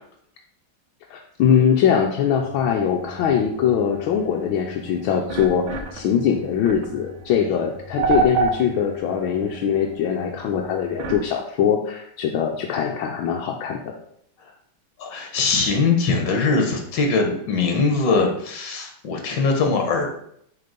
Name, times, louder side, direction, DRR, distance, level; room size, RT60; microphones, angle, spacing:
voice 1, 1.1-5.7 5.9-13.8, left 8 dB, 80° left, 1 dB, 1.5 m, -22 dB
sound 1, 2.4-11.3, right 4 dB, 80° right, 1.7 m, -30 dB
voice 2, 15.0-20.1, left 4 dB, 65° left, 3 dB, 1.9 m, -21 dB
6.9 x 4.3 x 5.2 m, 0.70 s
omnidirectional pair, 2.2 m